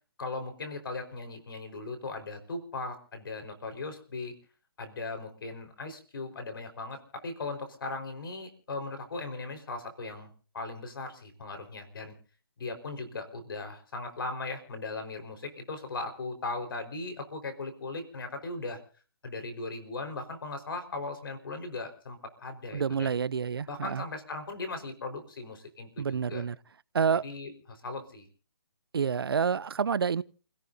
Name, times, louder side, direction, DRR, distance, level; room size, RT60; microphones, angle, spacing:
voice 1, 0.2-4.3 4.8-12.1 12.6-18.8 19.2-23.1 23.7-26.4 27.1-28.2, left 3 dB, 65° left, 4.8 m, -38 dB
voice 2, 22.7-24.0 26.0-26.6 26.9-27.2 28.9-30.2, right 6 dB, 70° right, 0.7 m, -28 dB
29.0 x 17.5 x 2.8 m
hypercardioid pair, 150°, 13 cm